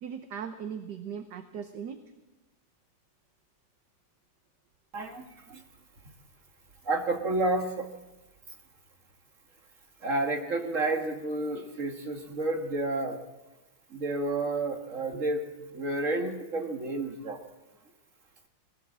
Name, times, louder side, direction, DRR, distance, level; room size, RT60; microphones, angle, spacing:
voice 1, 0.0-2.0 5.5-5.7 15.1-15.2, right 7 dB, 60° right, 7 dB, 1.5 m, -39 dB
voice 2, 6.9-7.9 10.0-13.2 13.9-15.5 15.7-17.4, right 2 dB, 40° right, 3 dB, 2.3 m, -30 dB
21.5 x 16.5 x 7.5 m, 1.1 s
omnidirectional pair, 2.3 m